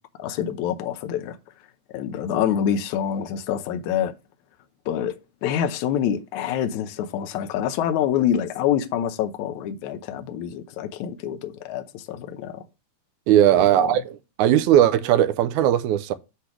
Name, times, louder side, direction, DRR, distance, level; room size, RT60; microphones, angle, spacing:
voice 1, 0.2-1.4 1.9-4.1 4.9-12.6 13.5-13.9, left 9 dB, 75° left, 2.1 m, -26 dB
voice 2, 13.3-16.1, right 11 dB, 80° right, 2.0 m, -18 dB
8.1 x 3.3 x 5.9 m
omnidirectional pair, 3.5 m